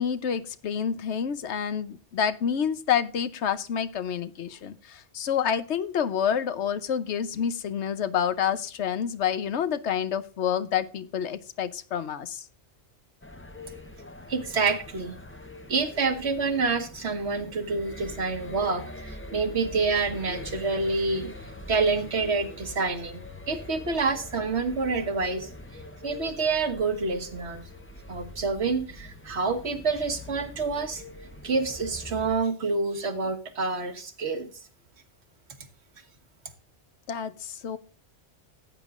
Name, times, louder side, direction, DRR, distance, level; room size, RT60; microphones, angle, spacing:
voice 1, 0.0-12.5 37.1-37.8, left 8 dB, 70° left, 13 dB, 1.0 m, -28 dB
sound 1, 13.2-32.3, left 1 dB, 15° left, 0.7 m, -43 dB
voice 2, 14.3-15.2 15.7-21.3 21.7-23.2 23.5-27.6 28.1-31.0 31.4-34.7, right 4 dB, 65° right, 7 dB, 1.6 m, -28 dB
14.5 x 9.0 x 2.4 m, 0.38 s
omnidirectional pair, 1.2 m